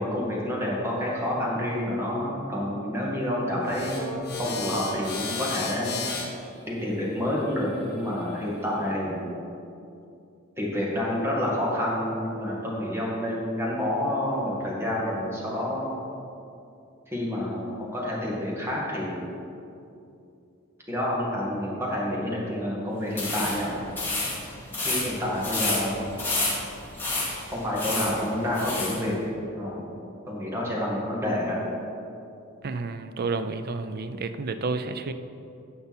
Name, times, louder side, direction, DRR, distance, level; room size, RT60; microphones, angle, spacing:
voice 1, 0.0-6.1 6.7-9.3 10.6-16.0 17.1-19.3 20.9-23.8 24.8-26.2 27.5-29.9 30.3-31.6, left 1 dB, 10° right, -5 dB, 2.2 m, -28 dB
sound 1, 3.6-8.8, left 4 dB, 50° left, 1.5 m, -36 dB
sound 2, 23.1-29.0, left 2 dB, 10° left, 2.7 m, -30 dB
voice 2, 32.6-35.1, right 3 dB, 50° right, 10 dB, 0.5 m, -30 dB
16.0 x 5.5 x 4.4 m, 2.6 s
head